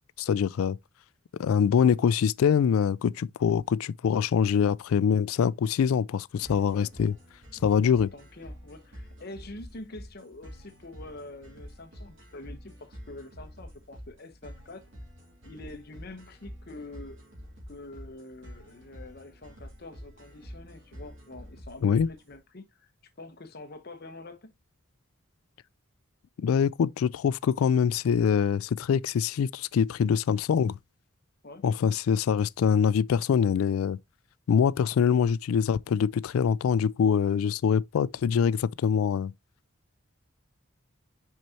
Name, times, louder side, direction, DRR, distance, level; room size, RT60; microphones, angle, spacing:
voice 1, 0.2-0.8 1.4-7.1 7.6-8.1 21.8-22.1 26.4-30.8 31.6-34.0 34.5-39.3, left 7 dB, 85° left, 0.3 m, -24 dB
sound 1, 6.4-22.4, equal, 60° right, 3.6 m, -47 dB
voice 2, 6.7-7.1 7.8-14.8 15.4-17.2 17.7-22.9 23.2-24.5 31.4-31.6, left 2 dB, 50° left, 0.9 m, -45 dB
6.1 x 5.6 x 2.8 m
head